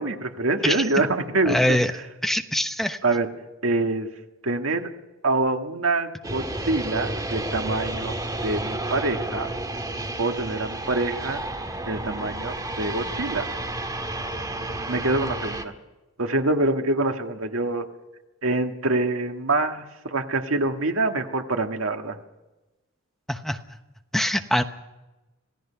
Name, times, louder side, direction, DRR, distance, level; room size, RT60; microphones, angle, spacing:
voice 1, 0.0-1.8 3.0-3.3 3.6-4.1 4.4-4.9 5.2-8.2 8.4-9.5 10.2-11.4 11.9-13.5 14.9-15.7 16.2-17.9 18.4-22.2, right 2 dB, 85° right, 5 dB, 1.8 m, -25 dB
voice 2, 1.5-1.9 2.2-3.0 23.3-23.6 24.1-24.6, equal, ahead, 7 dB, 1.0 m, -23 dB
sound 1, 6.2-15.6, right 1 dB, 20° right, 1.7 m, -31 dB
26.5 x 17.5 x 5.8 m, 1.1 s
head